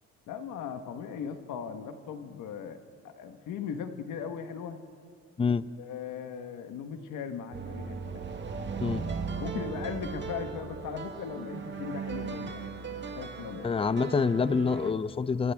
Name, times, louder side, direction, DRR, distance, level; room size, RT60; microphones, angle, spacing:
voice 1, 0.3-2.8 3.0-4.8 5.8-8.2 9.4-13.8, left 7 dB, 85° left, 7 dB, 1.4 m, -38 dB
sound 1, 7.5-14.9, right 5 dB, 40° right, 1.8 m, -37 dB
voice 2, 13.6-15.5, left 5 dB, 20° left, 16 dB, 0.5 m, -27 dB
28.5 x 26.5 x 3.6 m, 2.2 s
cardioid pair, 90°, 30 cm